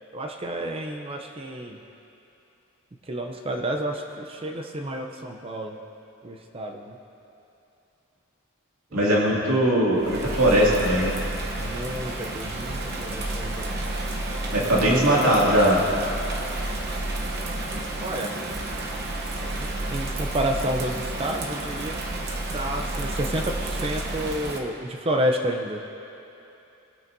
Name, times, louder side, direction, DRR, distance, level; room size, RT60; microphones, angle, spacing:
voice 1, 0.1-1.8 3.1-5.8 6.2-7.0 8.9-9.6 11.6-13.7 14.7-15.4 18.0-18.3 19.6-22.0 22.5-25.8, right 1 dB, 25° right, 3 dB, 0.5 m, -30 dB
voice 2, 8.9-11.2 14.5-15.8, right 1 dB, 80° right, -5 dB, 2.3 m, -20 dB
Bird vocalization bird call bird song / Rain, 10.0-24.6, right 2 dB, 50° right, 0.9 m, -31 dB
19.0 x 8.8 x 2.7 m, 2.8 s
head